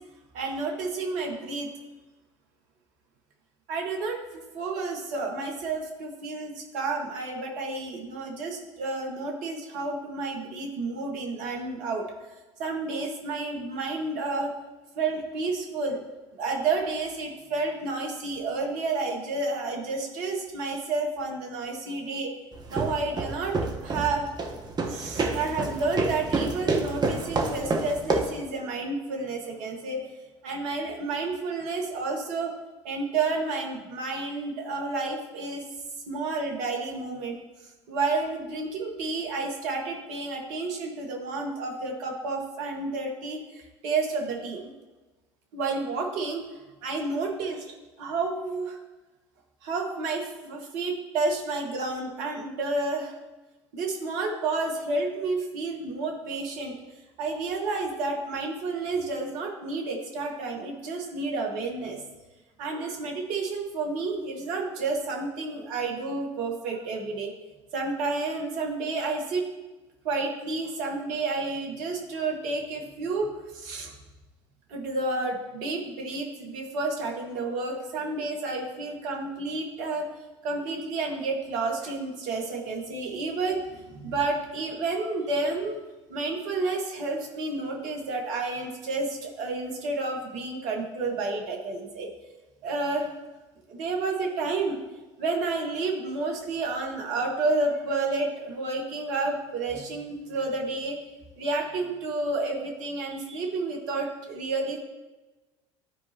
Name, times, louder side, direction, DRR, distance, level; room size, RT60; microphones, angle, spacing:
voice 1, 0.3-1.7 3.7-12.0 12.6-14.5 14.9-16.0 16.4-22.3 22.7-23.5 23.8-24.3 24.9-30.0 30.4-32.5 32.8-35.6 36.1-37.4 37.9-44.7 45.5-46.4 46.8-48.8 49.6-53.1 53.7-56.7 57.2-62.0 62.6-67.3 67.7-69.4 70.0-73.9 74.7-80.1 80.4-85.8 86.1-92.1 92.6-93.1 93.7-94.8 95.2-101.0 101.4-104.8, right 3 dB, 60° right, 1 dB, 1.6 m, -30 dB
sound 1, 22.5-28.4, right 3 dB, 25° right, 1.1 m, -29 dB
12.5 x 4.6 x 2.9 m, 1.2 s
hypercardioid pair, 70°, 15 cm